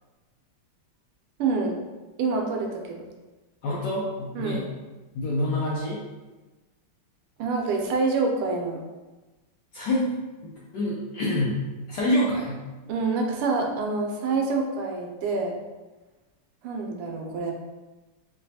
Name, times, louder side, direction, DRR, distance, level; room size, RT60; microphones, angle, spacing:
voice 1, 1.4-1.8 2.2-3.0 4.3-4.6 7.4-8.8 12.9-15.5 16.6-17.5, right 4 dB, 90° right, 1 dB, 1.5 m, -26 dB
voice 2, 3.6-4.6 5.1-6.0 9.7-10.1 10.4-11.6 11.9-12.6, left 1 dB, 75° left, -5 dB, 1.0 m, -26 dB
5.0 x 2.2 x 2.7 m, 1.2 s
omnidirectional pair, 2.4 m